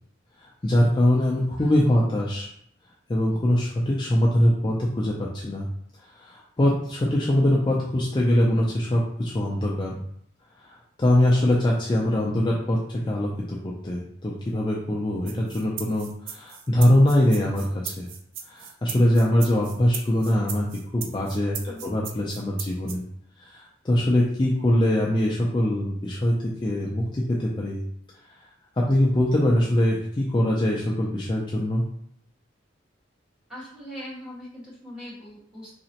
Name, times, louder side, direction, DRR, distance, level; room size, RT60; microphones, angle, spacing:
voice 1, 0.4-2.5 3.1-5.7 6.1-10.0 10.6-18.1 18.5-20.7 20.9-23.0 23.4-27.8 28.8-31.8, left 1 dB, 25° left, -3 dB, 0.4 m, -23 dB
voice 2, 12.2-12.6 21.6-22.0 33.5-35.7, equal, 5° right, -9 dB, 1.5 m, -41 dB
sound 1, 15.3-23.0, right 7 dB, 80° right, 0.5 m, -37 dB
4.1 x 2.9 x 2.8 m, 0.69 s
head